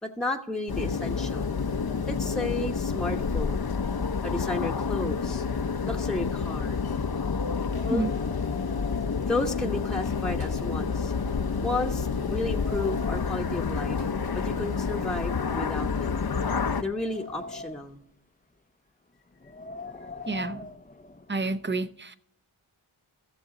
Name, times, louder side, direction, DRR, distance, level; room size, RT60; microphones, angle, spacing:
voice 1, 0.0-1.6 2.1-3.7 4.2-6.8 7.8-8.0 9.3-11.1 11.6-14.1 14.3-16.2 16.8-18.0 20.0-20.1, left 2 dB, ahead, 1.0 m, -33 dB
sound 1, 0.7-16.8, left 5 dB, 50° left, 0.8 m, -29 dB
Wind, 7.5-10.2 10.5-10.6 11.3-11.4 11.9-13.5 14.3-15.9 16.4-18.1 19.3-21.4, left 3 dB, 15° left, 0.6 m, -44 dB
sound 2, 10.4-10.7 11.9-12.3 13.9-14.6, right 4 dB, 85° right, 1.7 m, -51 dB
voice 2, 20.3-20.7 21.3-22.2, right 3 dB, 25° right, 0.7 m, -29 dB
15.0 x 7.0 x 3.8 m
cardioid pair, 40°, 48 cm